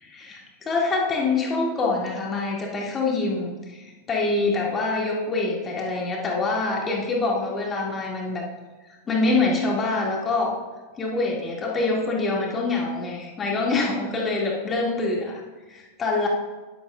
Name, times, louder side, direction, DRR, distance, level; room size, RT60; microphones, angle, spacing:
voice 1, 0.1-8.4 8.9-10.5 11.0-15.4 15.7-16.3, left 3 dB, 20° left, -2 dB, 2.4 m, -25 dB
11.0 x 11.0 x 2.5 m, 1.2 s
figure-of-eight pair, 90°, 0 cm